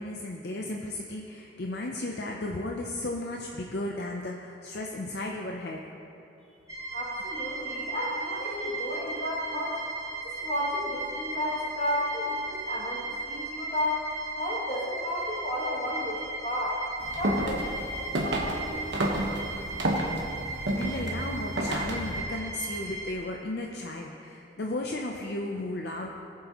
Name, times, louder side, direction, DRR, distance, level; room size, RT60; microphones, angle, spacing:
voice 1, 0.0-5.8 20.4-26.1, left 2 dB, 55° left, 0 dB, 0.6 m, -35 dB
sound 1, 6.7-23.1, right 3 dB, 20° right, 0.8 m, -36 dB
voice 2, 6.9-9.8 10.2-14.0 14.4-16.8 17.2-18.8, left 1 dB, 35° left, -6 dB, 2.2 m, -32 dB
sound 2, 17.0-22.2, right 1 dB, 70° right, 1.2 m, -31 dB
18.0 x 7.5 x 3.0 m, 2.9 s
head